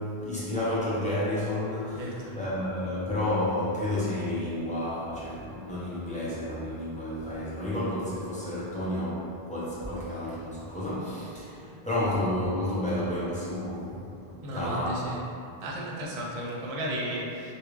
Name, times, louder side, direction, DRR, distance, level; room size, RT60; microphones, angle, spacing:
voice 1, 0.0-2.1 2.4-15.0, left 1 dB, 10° left, -10 dB, 0.7 m, -31 dB
voice 2, 1.9-2.4 14.4-15.3 15.6-17.5, right 1 dB, 45° right, -3 dB, 0.5 m, -34 dB
3.3 x 2.5 x 3.1 m, 2.6 s
omnidirectional pair, 1.0 m